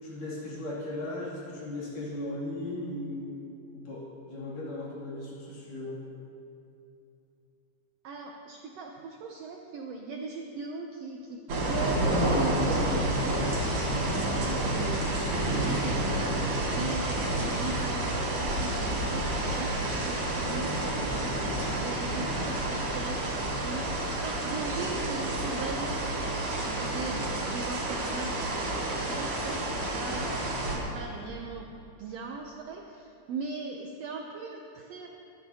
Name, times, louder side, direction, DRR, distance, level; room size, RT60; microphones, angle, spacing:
voice 1, 0.0-3.3 3.7-6.0, left 1 dB, 80° left, -7 dB, 4.2 m, -37 dB
voice 2, 4.3-5.0 8.0-19.8 20.0-28.6 28.9-30.4 30.7-31.7 32.0-35.1, right 4 dB, 80° right, 2 dB, 1.4 m, -39 dB
sound 1, 11.5-30.8, right 1 dB, 65° right, 3.2 m, -29 dB
22.0 x 10.0 x 2.8 m, 2.7 s
omnidirectional pair, 3.7 m